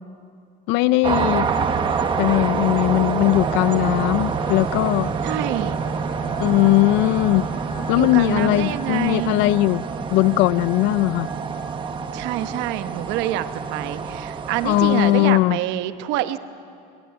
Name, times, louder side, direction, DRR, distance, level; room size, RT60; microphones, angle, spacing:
voice 1, 0.7-1.5 2.2-5.1 6.4-7.5 7.9-9.8 10.1-11.3 14.6-15.6, left 17 dB, 65° left, 19 dB, 0.5 m, -19 dB
sound 1, 1.0-15.3, right 5 dB, 25° right, 1.0 m, -27 dB
sound 2, 3.3-8.7, right 5 dB, 40° right, 4.0 m, -38 dB
voice 2, 5.2-5.8 7.9-9.4 12.1-16.4, right 13 dB, 65° right, 11 dB, 1.0 m, -26 dB
sound 3, 5.5-11.6, left 3 dB, 30° left, 4.9 m, -45 dB
21.5 x 19.0 x 9.4 m, 2.4 s
cardioid pair, 175°, 20 cm